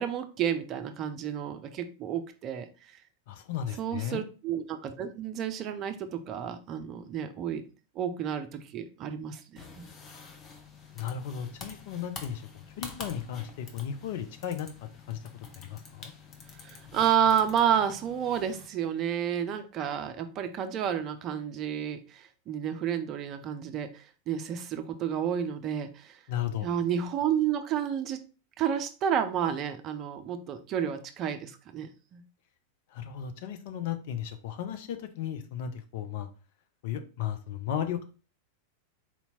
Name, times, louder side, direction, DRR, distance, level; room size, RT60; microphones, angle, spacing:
voice 1, 0.0-2.9 3.8-7.6 8.0-9.6 16.6-26.2 26.6-28.2 28.6-32.2, right 9 dB, 35° right, 8 dB, 0.5 m, -30 dB
voice 2, 3.3-4.2 10.9-12.5 12.8-15.2 15.6-16.1 26.3-26.7 32.9-36.3 36.8-38.0, left 9 dB, 50° left, 8 dB, 0.5 m, -35 dB
sound 1, 9.6-18.7, left 4 dB, 30° left, 0.9 m, -47 dB
4.3 x 2.8 x 4.1 m, 0.35 s
figure-of-eight pair, 90°, 0 cm